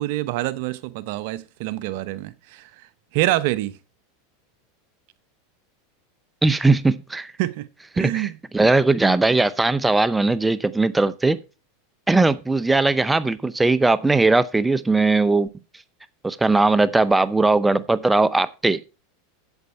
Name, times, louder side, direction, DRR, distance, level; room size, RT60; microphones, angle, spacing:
voice 1, 0.0-2.9 3.1-3.8 7.4-7.7 7.9-8.4, right 16 dB, 60° right, 0.8 m, -26 dB
voice 2, 6.4-7.3 8.0-8.3 8.5-11.4 12.1-15.5 16.2-18.8, right 3 dB, 10° right, 0.7 m, -19 dB
8.1 x 8.1 x 5.5 m
hypercardioid pair, 100°, 0 cm